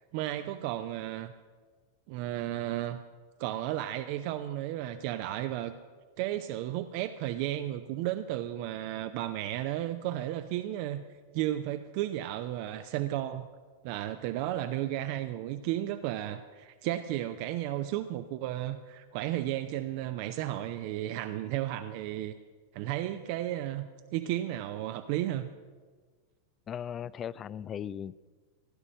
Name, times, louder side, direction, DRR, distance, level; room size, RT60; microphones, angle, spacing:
voice 1, 0.1-1.3 2.1-3.0 3.4-5.7 6.2-11.0 11.3-13.5 13.8-22.3 22.7-25.5, right 13 dB, 45° right, 9 dB, 0.6 m, -33 dB
voice 2, 26.7-28.2, left 9 dB, 25° left, 21 dB, 0.4 m, -37 dB
16.5 x 11.0 x 6.4 m, 1.5 s
figure-of-eight pair, 90°, 0 cm